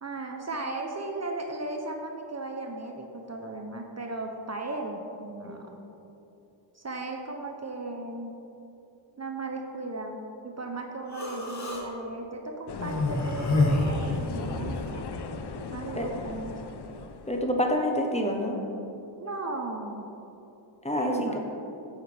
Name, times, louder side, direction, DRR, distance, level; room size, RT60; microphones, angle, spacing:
voice 1, 0.0-5.7 6.7-8.3 9.2-10.2 10.4-15.1 15.7-16.8 19.2-20.1 21.0-21.4, right 2 dB, 35° right, 2 dB, 0.7 m, -36 dB
Human voice, 11.1-11.8 12.8-14.7, left 2 dB, 35° left, 1.4 m, -27 dB
sound 1, 12.7-17.5, left 5 dB, 55° left, 0.6 m, -38 dB
voice 2, 17.3-18.6 20.8-21.4, equal, 15° left, 1 dB, 0.8 m, -27 dB
9.1 x 8.0 x 3.3 m, 2.9 s
wide cardioid pair, 105°, 49 cm